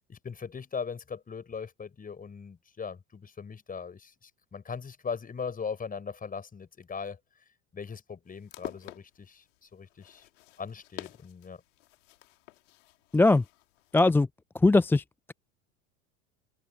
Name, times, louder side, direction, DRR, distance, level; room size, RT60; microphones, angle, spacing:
voice 1, 0.0-7.2 7.7-10.3 10.6-11.6, left 6 dB, 20° left, 4.6 m, -39 dB
sound 1, 8.3-14.2, left 18 dB, 65° left, 3.4 m, -48 dB
voice 2, 13.1-13.4 13.9-14.3 14.5-15.3, left 2 dB, 5° left, 0.5 m, -21 dB
open air
figure-of-eight pair, 80°, 40 cm